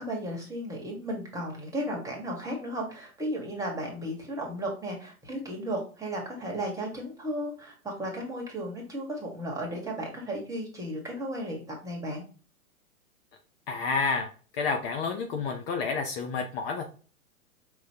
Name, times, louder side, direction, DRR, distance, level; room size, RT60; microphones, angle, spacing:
voice 1, 0.0-12.2, equal, 5° right, -1 dB, 1.5 m, -34 dB
voice 2, 13.7-16.9, left 4 dB, 40° left, 4 dB, 0.8 m, -30 dB
5.3 x 3.1 x 2.8 m, 0.38 s
hypercardioid pair, 130°, 44 cm